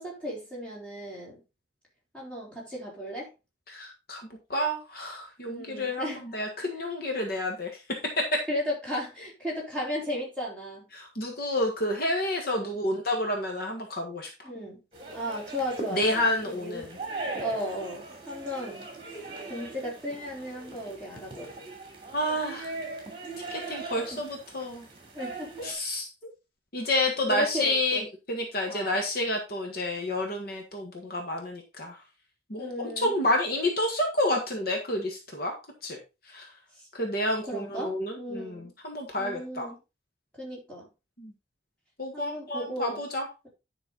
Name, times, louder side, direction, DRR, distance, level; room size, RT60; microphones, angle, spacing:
voice 1, 0.0-1.4 2.1-3.3 5.4-6.2 8.5-10.9 12.5-12.8 14.4-14.8 15.1-17.0 17.4-19.2 19.5-21.7 23.9-24.2 25.1-25.7 27.2-28.1 28.7-29.0 32.6-33.1 36.8-36.9 37.5-38.7 39.2-39.8 40.4-40.9 42.1-43.0, equal, 5° left, -5 dB, 4.0 m, -35 dB
voice 2, 3.7-4.2 4.5-7.8 8.2-8.4 10.9-14.3 15.9-16.9 22.1-22.7 23.5-24.9 25.6-26.1 26.7-28.0 28.3-32.0 32.5-35.5 35.8-36.0 36.3-36.5 36.9-39.7 41.2-41.3 42.0-43.3, left 1 dB, 50° left, 2 dB, 1.5 m, -29 dB
sound 1, 14.9-25.7, right 3 dB, 25° right, 3.0 m, -40 dB
10.0 x 5.5 x 3.9 m, 0.27 s
head